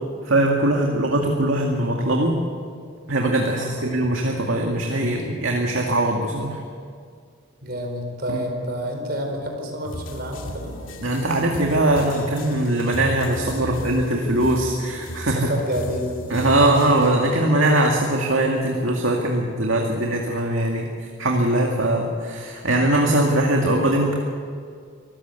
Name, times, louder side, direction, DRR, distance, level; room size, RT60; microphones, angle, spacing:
voice 1, 0.2-2.4 3.1-6.6 8.3-8.4 11.0-15.5 16.3-24.2, right 1 dB, 75° right, 0 dB, 2.2 m, -21 dB
voice 2, 3.4-3.9 7.6-10.7 13.5-13.9 15.2-16.2 21.6-21.9, equal, 50° right, 3 dB, 4.5 m, -29 dB
sound 1, 9.8-17.2, left 1 dB, 80° left, 2.2 m, -35 dB
24.5 x 15.0 x 8.3 m, 2.1 s
head